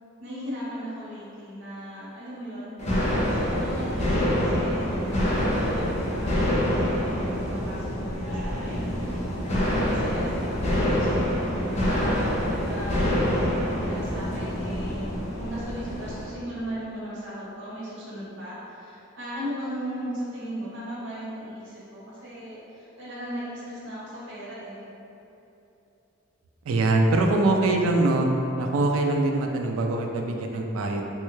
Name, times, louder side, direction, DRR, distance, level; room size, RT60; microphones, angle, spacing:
voice 1, 0.2-2.7 3.3-4.9 5.5-11.4 11.7-13.2 13.8-15.1 15.4-24.8, equal, 60° right, -8 dB, 0.9 m, -37 dB
sound 1, 2.8-16.3, equal, 30° left, 0.6 m, -26 dB
voice 2, 26.7-28.3 28.6-31.0, right 2 dB, 80° right, 3 dB, 0.3 m, -23 dB
3.5 x 2.2 x 3.0 m, 2.9 s
head